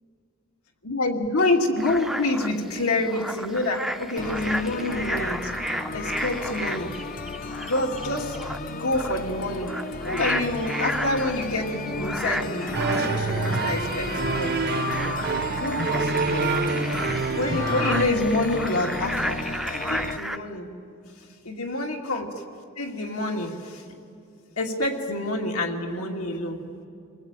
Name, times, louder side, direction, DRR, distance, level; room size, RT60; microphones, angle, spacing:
voice 1, 0.8-5.5 5.9-6.9 7.6-8.4 8.7-9.8 10.0-14.5 14.9-15.2 15.5-16.7 17.3-19.4 19.9-20.7 21.4-22.3 22.8-23.8 24.6-26.6, left 2 dB, 80° left, 2 dB, 2.7 m, -27 dB
sound 1, 1.8-20.4, equal, ahead, 0.6 m, -33 dB
sound 2, 4.2-20.2, left 3 dB, 40° left, 0.7 m, -35 dB
sound 3, 12.7-18.1, right 3 dB, 45° right, 0.8 m, -26 dB
29.5 x 21.0 x 9.1 m, 2.5 s
head